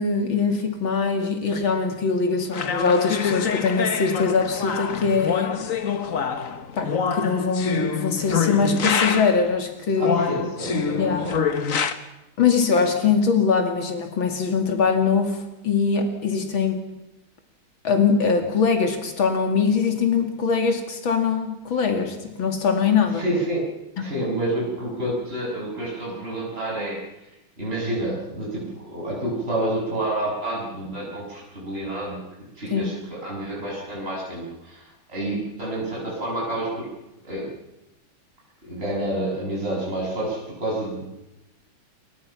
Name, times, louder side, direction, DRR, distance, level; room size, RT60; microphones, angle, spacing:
voice 1, 0.0-5.5 6.8-10.2 11.0-11.3 12.4-16.8 17.8-23.2 32.7-32.9, left 5 dB, 85° left, 4 dB, 3.2 m, -22 dB
sound 1, 2.5-9.5 10.0-11.9, left 6 dB, 45° left, 1.6 m, -26 dB
voice 2, 10.0-11.4 23.1-23.7 24.0-27.0 27.6-32.2 32.6-36.9 37.2-37.5 38.6-41.1, right 1 dB, 30° right, -4 dB, 7.5 m, -29 dB
29.5 x 23.5 x 5.9 m, 0.93 s
omnidirectional pair, 2.1 m